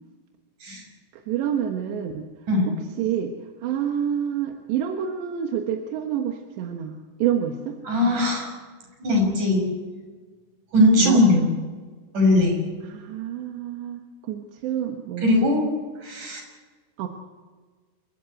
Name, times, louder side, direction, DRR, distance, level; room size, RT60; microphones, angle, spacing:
voice 1, 1.1-2.3 3.0-3.3 3.6-7.8 11.0-11.2 12.8-15.3 17.0-17.1, right 9 dB, 70° right, 3 dB, 3.3 m, -28 dB
voice 2, 7.9-8.5 9.0-9.6 10.7-11.5 12.1-12.6 15.2-15.7 16.0-16.4, left 1 dB, 40° right, 1 dB, 7.4 m, -19 dB
28.5 x 16.0 x 9.1 m, 1.4 s
omnidirectional pair, 5.7 m